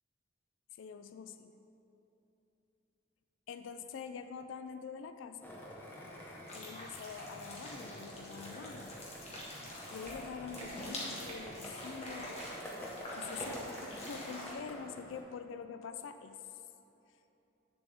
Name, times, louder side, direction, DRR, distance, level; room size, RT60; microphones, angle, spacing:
voice 1, 0.8-1.5 3.5-5.5 6.5-9.0 9.3-9.5 9.9-12.4 13.1-16.4, left 6 dB, 75° left, 9 dB, 0.3 m, -45 dB
Skateboard, 5.4-15.2, equal, 10° left, 0.9 m, -48 dB
sound 1, 6.5-14.5, left 1 dB, 35° left, 1.4 m, -46 dB
sound 2, 9.3-9.4 10.0-10.1 10.6-10.7 11.2-11.4 12.3-12.5 13.3-13.5 13.9-14.0, right 2 dB, 40° right, 1.4 m, -51 dB
8.5 x 7.0 x 3.4 m, 3.0 s
head